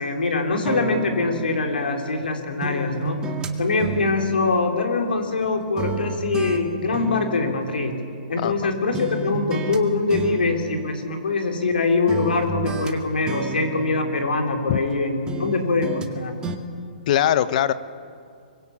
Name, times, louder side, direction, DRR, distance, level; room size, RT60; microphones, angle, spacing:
voice 1, 0.0-3.2 3.6-7.9 8.3-16.4, left 3 dB, 70° left, 3 dB, 4.1 m, -23 dB
sound 1, 0.7-2.3 2.6-5.5 5.8-8.6 8.9-9.8 10.1-11.7 12.1-15.0 15.3-16.1 16.4-16.6, right 3 dB, 15° right, 2.0 m, -32 dB
voice 2, 8.4-8.7 14.7-14.8 17.1-17.7, left 11 dB, 50° left, 14 dB, 1.1 m, -21 dB
24.0 x 22.0 x 8.7 m, 2.3 s
hypercardioid pair, 125°, 5 cm